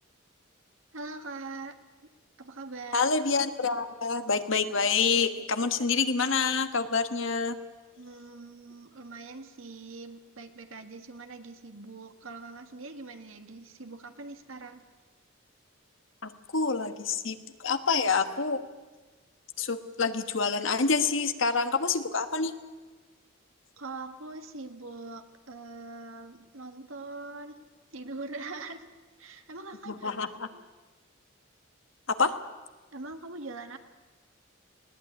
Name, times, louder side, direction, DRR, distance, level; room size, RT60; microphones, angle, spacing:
voice 1, 0.9-2.1 2.4-3.1 8.0-14.8 23.8-28.9 29.2-30.7 32.9-33.8, right 3 dB, 80° right, 7 dB, 1.8 m, -43 dB
voice 2, 2.9-7.6 16.2-18.6 19.6-22.5 29.9-30.3 32.1-32.3, left 4 dB, 70° left, 9 dB, 1.4 m, -27 dB
20.0 x 18.0 x 9.5 m, 1.3 s
head